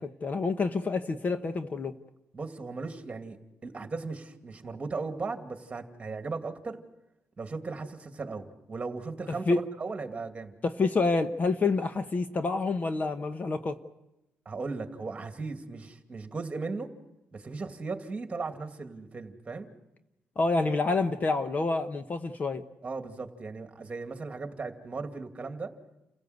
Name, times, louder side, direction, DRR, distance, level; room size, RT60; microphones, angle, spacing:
voice 1, 0.0-1.9 9.3-9.6 10.6-13.8 20.4-22.6, left 3 dB, 35° left, 9 dB, 1.1 m, -28 dB
voice 2, 2.3-6.8 7.4-10.5 14.5-16.9 17.3-19.7 22.8-25.7, right 4 dB, 25° right, 6 dB, 2.5 m, -37 dB
29.5 x 16.5 x 8.2 m, 0.94 s
cardioid pair, 105°, 5 cm